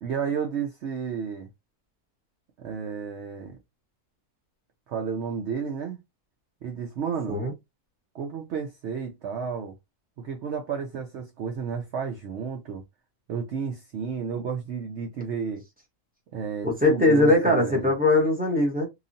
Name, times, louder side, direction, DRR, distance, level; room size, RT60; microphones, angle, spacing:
voice 1, 0.0-1.5 2.6-3.6 4.9-6.0 6.6-7.4 8.1-9.7 10.2-12.8 13.3-15.6 16.3-17.9, right 6 dB, 65° right, 0.7 m, -32 dB
voice 2, 16.6-18.9, left 2 dB, 10° right, 0.7 m, -21 dB
2.8 x 2.4 x 2.6 m
omnidirectional pair, 1.6 m